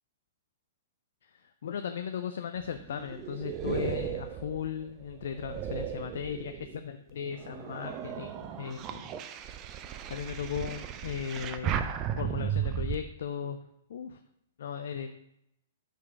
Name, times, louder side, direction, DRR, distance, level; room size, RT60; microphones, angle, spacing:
voice 1, 1.6-9.0 10.1-13.6 13.9-14.2 14.6-15.1, left 8 dB, 55° left, 8 dB, 0.4 m, -37 dB
sound 1, 2.6-6.8 7.3-13.0, right 9 dB, 30° right, 0.5 m, -35 dB
6.5 x 5.2 x 4.7 m, 0.79 s
figure-of-eight pair, 110°, 0 cm